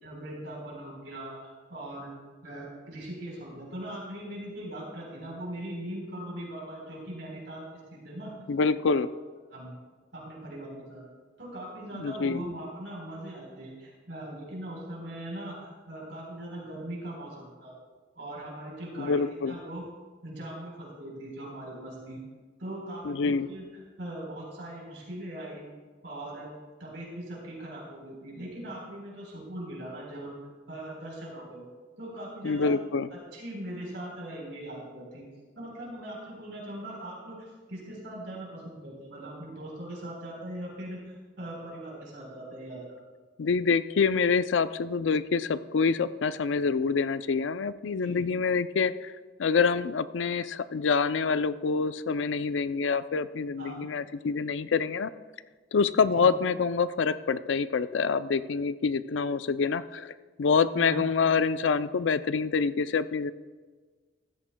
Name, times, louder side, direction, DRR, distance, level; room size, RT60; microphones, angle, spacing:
voice 1, 0.0-2.1 2.4-8.3 8.8-8.9 9.5-9.7 10.1-11.0 11.4-17.7 18.2-19.8 20.2-22.2 22.6-25.6 26.0-26.5 26.8-30.3 30.7-31.6 32.0-32.7 33.3-35.2 35.6-43.0 48.0-48.2 53.6-53.9 56.1-56.3 60.7-61.0, right 1 dB, 70° right, -3 dB, 3.9 m, -40 dB
voice 2, 8.5-9.1 11.9-12.4 19.0-19.6 23.0-23.5 32.4-33.1 43.4-49.1 49.4-55.1 55.7-63.3, left 5 dB, 90° left, 14 dB, 0.4 m, -26 dB
15.5 x 13.5 x 2.2 m, 1.4 s
head